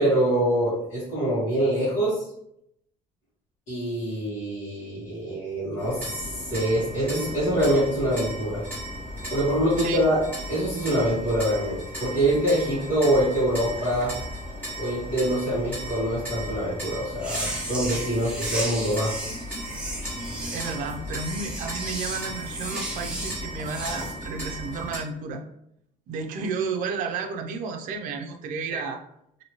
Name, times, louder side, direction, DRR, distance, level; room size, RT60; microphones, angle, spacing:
voice 1, 0.0-2.2 3.7-8.6 9.3-10.2 10.5-14.1 14.8-19.1, right 1 dB, 55° left, -11 dB, 1.4 m, -25 dB
sound 1, 5.8-25.0, equal, 10° left, 1.1 m, -36 dB
sound 2, 17.1-24.1, right 1 dB, 5° right, 0.6 m, -34 dB
voice 2, 20.5-25.4 26.1-29.0, right 5 dB, 60° right, 5 dB, 0.5 m, -32 dB
2.9 x 2.7 x 3.0 m, 0.75 s
cardioid pair, 160°, 15 cm